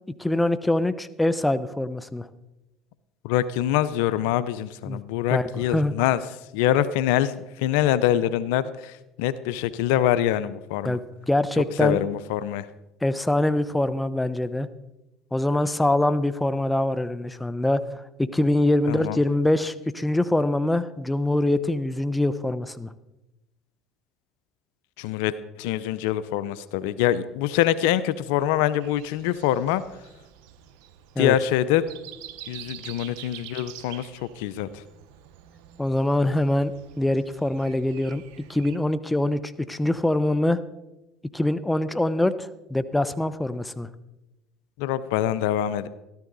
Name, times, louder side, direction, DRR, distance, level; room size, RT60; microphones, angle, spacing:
voice 1, 0.2-2.3 4.9-5.0 5.3-5.9 10.8-12.0 13.0-14.7 15.3-17.8 18.2-22.9 31.2-31.3 35.8-38.2 38.5-40.6 41.3-43.9, left 1 dB, 10° left, 12 dB, 0.8 m, -24 dB
voice 2, 3.2-6.2 6.5-11.0 11.8-12.7 18.9-19.2 25.0-29.8 31.2-31.8 32.5-34.8 44.8-45.9, left 12 dB, 75° left, 16 dB, 0.6 m, -24 dB
Breathing, 28.8-38.8, right 11 dB, 75° right, 0.8 m, -46 dB
13.5 x 13.0 x 4.0 m, 0.96 s
hypercardioid pair, 75°, 0 cm